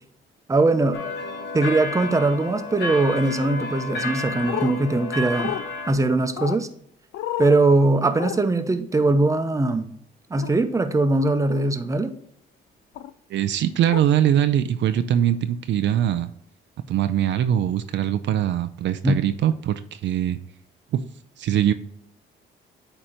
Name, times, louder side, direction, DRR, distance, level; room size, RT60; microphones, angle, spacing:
voice 1, 0.5-1.1 1.5-5.6 5.9-6.7 7.4-9.9 10.3-12.1 19.0-19.2, right 2 dB, 15° right, 8 dB, 0.8 m, -21 dB
sound 1, 0.9-5.9, left 2 dB, 60° left, 1.8 m, -31 dB
sound 2, 4.5-4.7 5.4-5.6 6.4-6.6 7.1-7.6 8.1-8.4 10.4-10.5 11.4-11.7 12.9-13.1 13.9-14.0, left 12 dB, 80° left, 0.5 m, -30 dB
voice 2, 13.3-16.3 16.9-20.4 20.9-21.0 21.4-21.7, right 10 dB, 65° right, 10 dB, 0.5 m, -22 dB
8.7 x 3.0 x 5.0 m, 0.66 s
cardioid pair, 90°, 20 cm